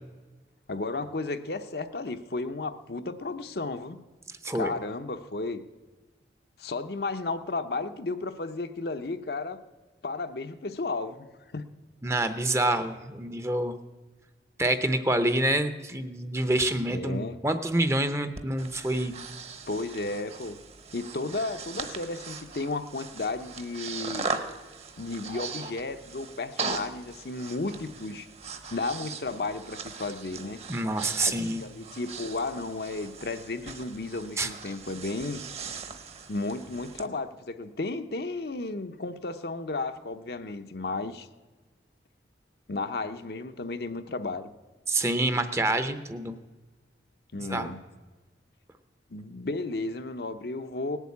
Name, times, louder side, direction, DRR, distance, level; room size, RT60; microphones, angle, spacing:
voice 1, 0.7-4.0 4.5-5.6 6.6-9.6 10.0-11.3 11.5-11.6 16.9-17.4 19.7-20.6 20.9-24.3 25.0-28.3 28.7-30.6 31.2-35.4 36.3-41.3 42.7-44.5 45.0-45.1 47.3-47.8 49.1-51.0, left 3 dB, 60° left, 8 dB, 0.8 m, -33 dB
voice 2, 4.4-4.7 12.0-13.8 14.6-19.1 30.7-31.6 34.4-34.5 44.9-46.4 47.4-47.7, right 1 dB, 15° right, 10 dB, 0.7 m, -27 dB
Breathing, 18.4-37.1, right 4 dB, 35° right, 1.0 m, -39 dB
18.5 x 8.3 x 8.4 m, 1.3 s
head